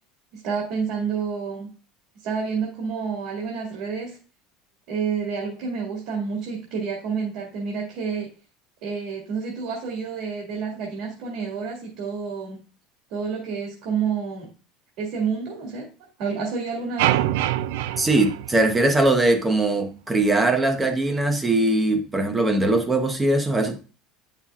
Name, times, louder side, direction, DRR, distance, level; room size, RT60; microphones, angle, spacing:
voice 1, 0.3-1.7 2.2-4.2 4.9-8.3 8.8-12.6 13.1-14.5 15.0-15.9 16.2-17.2, right 5 dB, 55° right, 2.1 m, -29 dB
sound 1, 17.0-19.3, right 13 dB, 80° right, 0.4 m, -25 dB
voice 2, 18.0-23.8, right 2 dB, 10° right, 0.8 m, -21 dB
9.4 x 5.7 x 2.4 m
cardioid pair, 175°, 0 cm